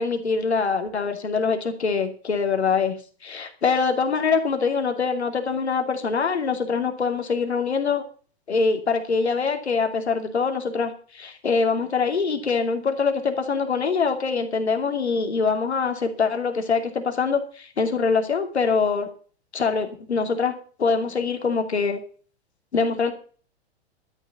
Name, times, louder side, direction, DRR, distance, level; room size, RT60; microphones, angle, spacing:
voice 1, 0.0-2.9 3.2-8.0 8.5-19.1 19.5-22.0 22.7-23.1, left 5 dB, 80° left, 5 dB, 2.8 m, -24 dB
13.0 x 7.2 x 7.1 m, 0.41 s
hypercardioid pair, 110°, 32 cm